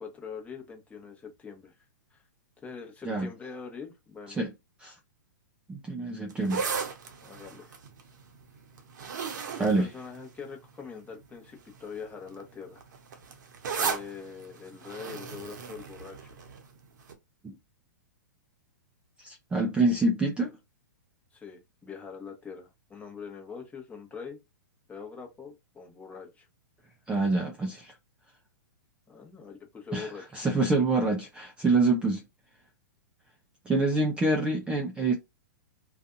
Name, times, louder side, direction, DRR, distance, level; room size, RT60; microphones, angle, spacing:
voice 1, 0.0-1.7 2.1-2.2 2.6-4.4 7.2-7.8 9.6-12.8 13.8-16.4 21.3-24.4 24.9-26.5 29.1-30.2, left 6 dB, 15° left, 0.9 m, -43 dB
voice 2, 5.7-6.7 9.6-9.9 17.4-17.6 19.2-20.6 27.1-27.9 29.9-32.2 33.7-35.1, right 2 dB, 10° right, 0.5 m, -26 dB
sound 1, 6.3-10.7 11.5-11.8 12.0-16.7 17.1-17.2, right 6 dB, 70° right, 0.7 m, -36 dB
2.6 x 2.3 x 2.5 m
hypercardioid pair, 130°, 10 cm